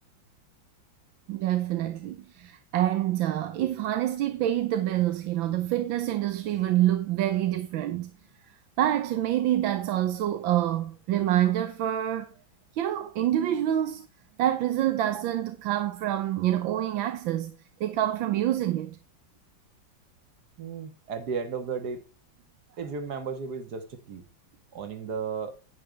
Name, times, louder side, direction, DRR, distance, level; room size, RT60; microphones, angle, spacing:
voice 1, 1.3-8.1 8.8-12.3 12.7-14.1 14.4-17.5 17.8-19.0, right 12 dB, 80° right, 1.5 m, -26 dB
voice 2, 20.6-22.0 22.8-24.2 24.7-25.5, right 5 dB, 55° right, 1.9 m, -34 dB
10.5 x 8.6 x 3.3 m
omnidirectional pair, 2.1 m